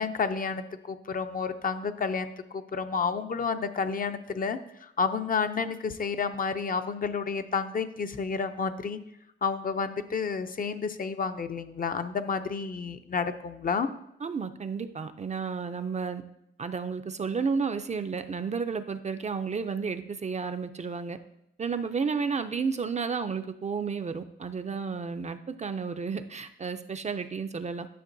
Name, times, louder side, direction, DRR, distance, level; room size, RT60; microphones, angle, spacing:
voice 1, 0.0-9.0 9.4-13.9, left 5 dB, 45° left, 9 dB, 0.5 m, -30 dB
voice 2, 14.2-16.2 16.6-21.2 21.6-27.9, right 5 dB, 35° right, 9 dB, 0.4 m, -32 dB
11.0 x 6.0 x 2.6 m, 0.79 s
wide cardioid pair, 105°, 21 cm